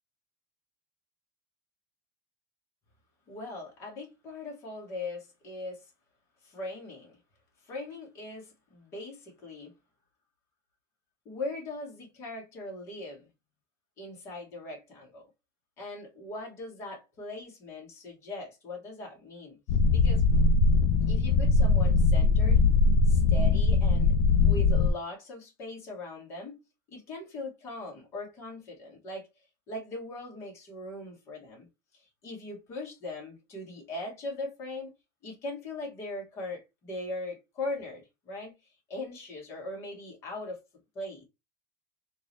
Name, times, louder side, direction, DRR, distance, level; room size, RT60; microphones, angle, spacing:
voice 1, 3.3-5.9 6.4-7.2 7.6-9.7 11.3-13.3 14.0-15.2 15.8-19.6 19.9-20.2 21.1-22.6 23.1-24.1 24.4-26.6 26.9-29.3 29.7-31.7 31.9-34.9 35.2-38.5 38.9-40.6 40.9-41.2, left 2 dB, 30° left, 2.0 m, -40 dB
sound 1, 19.7-24.9, left 3 dB, 55° left, 0.5 m, -21 dB
3.6 x 2.8 x 3.1 m
cardioid pair, 165°, 9 cm